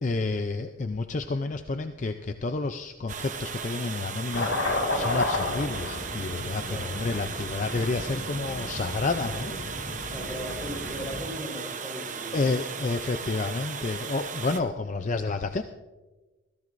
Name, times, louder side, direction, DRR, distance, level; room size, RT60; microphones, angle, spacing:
voice 1, 0.0-9.5 12.3-15.6, left 3 dB, 35° left, 8 dB, 0.5 m, -30 dB
Water, 3.1-14.6, right 6 dB, 40° right, 0.8 m, -37 dB
sound 1, 4.3-11.2, left 2 dB, 65° left, 2.0 m, -33 dB
voice 2, 10.1-12.5 12.8-12.9 13.3-13.6, equal, 5° left, -3 dB, 4.7 m, -38 dB
21.0 x 15.5 x 2.6 m, 1.2 s
head